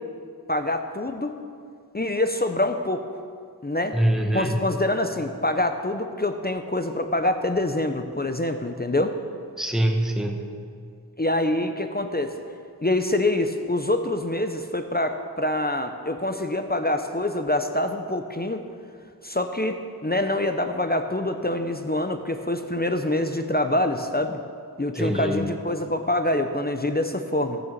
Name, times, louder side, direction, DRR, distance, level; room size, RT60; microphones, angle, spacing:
voice 1, 0.5-1.4 1.9-3.0 3.6-4.0 4.3-9.2 11.2-12.4 12.8-18.6 19.2-24.4 24.8-27.6, left 1 dB, 25° left, 7 dB, 0.7 m, -25 dB
voice 2, 3.9-4.5 9.6-10.5 24.9-25.5, right 1 dB, ahead, 3 dB, 1.1 m, -24 dB
15.0 x 6.9 x 6.7 m, 2.2 s
wide cardioid pair, 40°, 40 cm